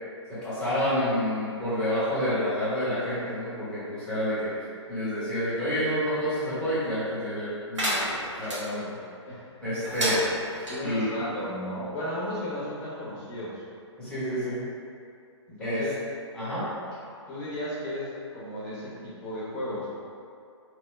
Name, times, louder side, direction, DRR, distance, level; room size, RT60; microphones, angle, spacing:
voice 1, 0.4-4.5 4.9-9.0 9.6-10.2 10.8-11.1 14.0-14.6 15.6-15.8 16.3-16.7, equal, 5° left, -13 dB, 1.0 m, -29 dB
sound 1, 7.7-8.6 9.8-10.8, equal, 90° right, 1.3 m, -29 dB
voice 2, 9.2-9.9 10.6-13.6 15.5-16.0 17.3-19.9, left 1 dB, 30° left, -8 dB, 0.7 m, -34 dB
3.0 x 2.1 x 3.2 m, 2.5 s
hypercardioid pair, 140°, 15 cm